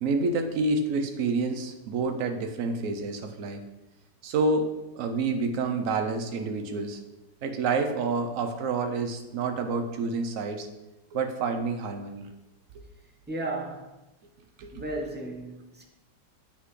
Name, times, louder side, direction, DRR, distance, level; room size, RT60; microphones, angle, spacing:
voice 1, 0.0-3.6 4.2-7.0 7.4-10.7 11.1-12.3 14.6-14.7, right 3 dB, 60° right, 6 dB, 1.0 m, -28 dB
voice 2, 13.3-13.9 14.7-15.8, right 2 dB, 15° right, -1 dB, 0.4 m, -34 dB
7.9 x 5.8 x 3.2 m, 1.0 s
omnidirectional pair, 1.9 m